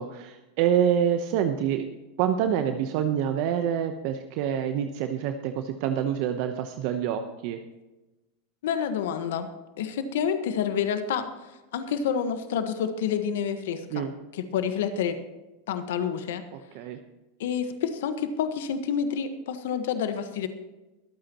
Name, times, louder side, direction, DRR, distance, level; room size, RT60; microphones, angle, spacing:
voice 1, 0.0-1.9 2.2-7.6 13.9-14.1 16.5-17.0, right 9 dB, 60° right, 7 dB, 0.9 m, -27 dB
voice 2, 8.6-9.5 9.8-11.2 11.7-14.1 14.3-15.2 15.7-16.4 17.4-20.5, left 7 dB, 75° left, 9 dB, 1.4 m, -28 dB
23.0 x 8.8 x 3.0 m, 1.1 s
hypercardioid pair, 105°, 0 cm